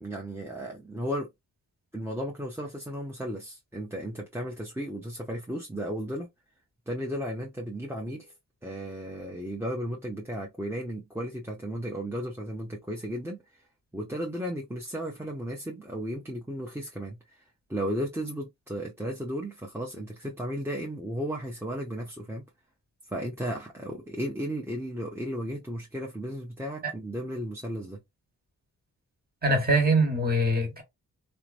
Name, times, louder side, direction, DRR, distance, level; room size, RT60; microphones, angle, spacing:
voice 1, 0.0-1.3 1.9-6.3 6.9-8.3 8.6-13.6 13.9-17.4 17.7-22.5 23.1-28.0, equal, 5° right, 0.8 m, -34 dB
voice 2, 29.4-30.8, right 1 dB, 25° right, 1.6 m, -23 dB
3.0 x 2.1 x 2.5 m
supercardioid pair, 45°, 39 cm